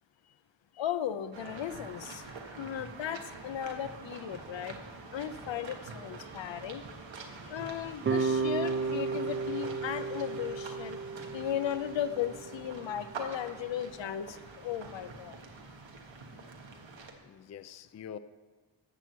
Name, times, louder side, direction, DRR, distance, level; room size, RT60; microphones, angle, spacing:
voice 1, 0.8-4.8 5.1-6.8 7.5-11.0 11.3-15.4, left 10 dB, 90° left, 12 dB, 0.6 m, -36 dB
sound 1, 1.3-17.1, right 3 dB, 90° right, 1.4 m, -46 dB
voice 2, 7.3-7.7 17.2-18.2, left 8 dB, 40° left, 13 dB, 0.4 m, -47 dB
sound 2, 8.0-13.1, right 4 dB, 30° right, 0.4 m, -34 dB
13.0 x 4.5 x 8.2 m, 1.4 s
wide cardioid pair, 145°, 44 cm